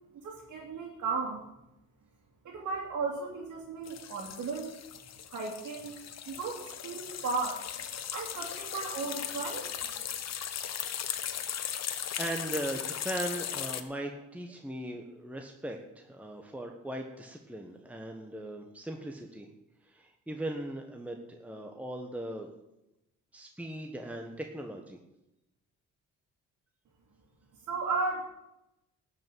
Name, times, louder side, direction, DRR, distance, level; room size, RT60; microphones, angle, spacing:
voice 1, 0.2-1.4 2.4-4.7 5.3-6.0 6.3-7.6 7.9-10.2 27.7-28.3, right 4 dB, 70° right, -3 dB, 2.8 m, -35 dB
sound 1, 3.9-13.8, left 9 dB, 60° left, 1.2 m, -38 dB
voice 2, 12.2-19.5 19.9-22.5 23.3-25.0, right 1 dB, 5° right, 2 dB, 1.3 m, -39 dB
12.5 x 5.7 x 9.1 m, 0.90 s
cardioid pair, 90°, 30 cm